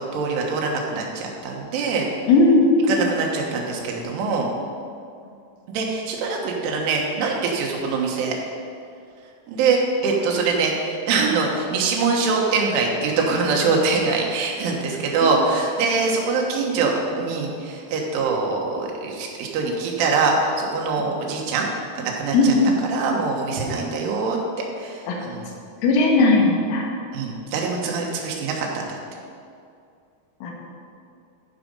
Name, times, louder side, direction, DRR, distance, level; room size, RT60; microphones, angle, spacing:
voice 1, 0.0-2.0 2.9-4.5 5.7-8.4 9.5-21.7 22.0-22.5 22.9-24.4 24.8-25.5 27.1-29.0, right 4 dB, 85° right, 0 dB, 3.8 m, -23 dB
voice 2, 2.3-2.7 22.3-22.7 25.1-25.2 25.8-26.9 30.4-30.5, left 2 dB, 90° left, -1 dB, 4.0 m, -17 dB
14.5 x 5.1 x 5.4 m, 2.4 s
omnidirectional pair, 5.5 m